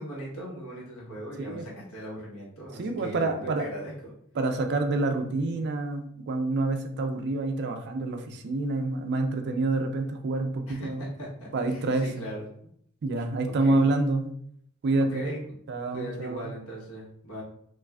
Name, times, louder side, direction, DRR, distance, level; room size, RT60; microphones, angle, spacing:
voice 1, 0.0-3.9 10.7-12.5 13.4-13.8 15.1-15.4 15.9-17.4, right 1 dB, 70° left, -4 dB, 1.1 m, -39 dB
voice 2, 2.8-3.7 4.4-11.0 11.5-12.1 13.0-14.4 14.8-15.3 15.7-16.5, right 2 dB, 50° right, 5 dB, 0.4 m, -27 dB
3.1 x 2.4 x 2.3 m, 0.67 s
head